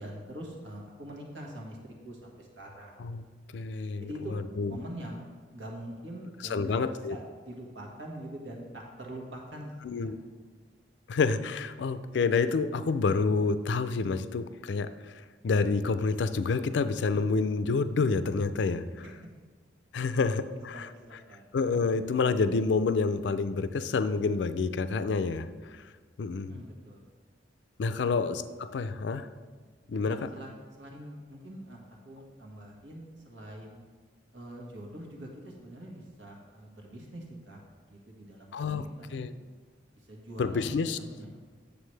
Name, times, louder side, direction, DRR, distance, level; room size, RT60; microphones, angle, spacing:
voice 1, 0.0-3.0 4.0-4.3 4.7-9.7 10.0-10.1 19.0-19.1 20.0-20.2 20.7-21.4 26.5-27.0 27.9-28.1 29.9-33.8 34.3-37.6 37.9-39.1 40.1-41.4, right 1 dB, 90° right, -1 dB, 1.6 m, -44 dB
voice 2, 3.5-4.8 6.5-7.2 9.8-10.2 11.1-15.1 15.4-18.9 19.9-20.9 21.5-25.5 25.7-25.8 26.2-26.5 27.8-29.3 29.9-30.3 38.5-38.8 39.1-39.3 40.4-41.0, left 4 dB, 75° left, 12 dB, 0.4 m, -28 dB
9.2 x 6.9 x 3.3 m, 1.5 s
head